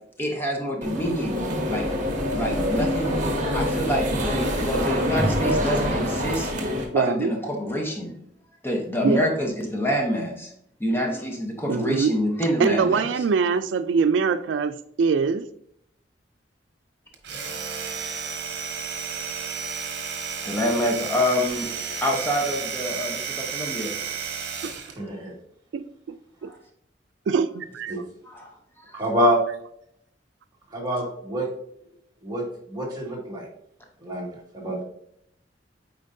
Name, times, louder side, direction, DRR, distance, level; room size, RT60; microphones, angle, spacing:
voice 1, 0.2-1.9 2.3-3.2 3.5-6.5 6.9-8.1 8.6-10.5 10.8-13.1 20.4-21.7 22.0-23.9 26.4-26.6 28.3-28.5 28.9-29.0, equal, 15° left, 1 dB, 0.9 m, -26 dB
sound 1, 0.8-6.8, equal, 45° right, 1.5 m, -25 dB
voice 2, 6.9-7.3 9.0-9.3 11.7-12.1 12.6-15.5 24.6-24.8 25.7-25.8 26.4-26.5 27.3-27.9, right 5 dB, 85° right, 12 dB, 0.3 m, -23 dB
Domestic sounds home sounds, 17.1-25.0, right 6 dB, 65° right, 1.2 m, -32 dB
voice 3, 25.0-25.3 27.9-28.0 28.9-29.4 30.7-31.5 32.2-33.5 34.0-34.8, equal, 25° right, -4 dB, 1.9 m, -26 dB
8.6 x 4.5 x 2.7 m, 0.71 s
head